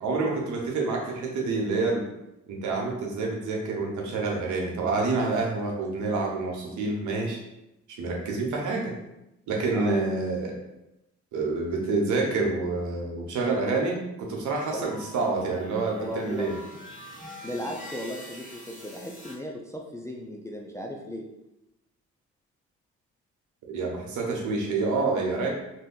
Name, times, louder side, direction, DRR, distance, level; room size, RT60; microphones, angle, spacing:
voice 1, 0.0-2.0 2.5-7.4 8.0-8.9 9.5-10.5 11.3-16.5 23.7-25.5, right 3 dB, 75° right, 0 dB, 0.9 m, -27 dB
sound 1, 14.6-19.4, left 1 dB, 25° left, 1.3 m, -45 dB
voice 2, 16.0-16.5 17.2-21.3, left 1 dB, 10° left, 0 dB, 0.3 m, -36 dB
2.5 x 2.2 x 3.7 m, 0.89 s
cardioid pair, 90°, 30 cm